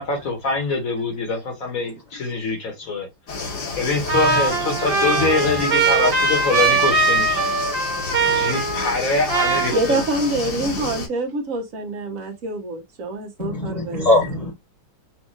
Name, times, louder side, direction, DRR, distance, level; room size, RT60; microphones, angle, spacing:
voice 1, 0.0-3.1 3.8-7.5 8.3-10.0, left 3 dB, 55° left, 1.6 m, -24 dB
sound 1, 3.3-11.1, left 4 dB, 70° left, 2.0 m, -31 dB
voice 2, 3.6-4.4 5.2-5.5 13.4-14.5, left 1 dB, 25° left, 1.3 m, -23 dB
Trumpet, 4.1-9.0 9.3-10.3, right 4 dB, 40° right, 1.1 m, -21 dB
voice 3, 9.7-14.1, right 2 dB, 55° right, 1.3 m, -26 dB
6.2 x 2.5 x 2.5 m
omnidirectional pair, 1.8 m